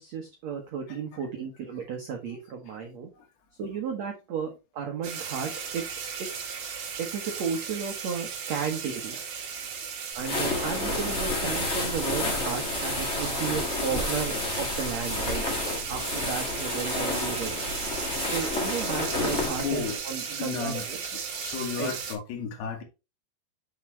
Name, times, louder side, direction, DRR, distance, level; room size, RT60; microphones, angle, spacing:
voice 1, 0.0-3.1 3.6-5.8 7.0-9.2 10.1-15.4 15.9-17.6 18.3-21.0 21.8-21.9, right 6 dB, 90° right, 1.5 m, -34 dB
sound 1, 5.0-22.2, right 6 dB, 55° right, 2.8 m, -36 dB
sound 2, 10.2-20.0, left 2 dB, 30° left, 1.2 m, -30 dB
voice 2, 19.6-20.0 20.4-22.8, left 7 dB, 70° left, 3.6 m, -33 dB
7.2 x 6.1 x 3.2 m
omnidirectional pair, 5.0 m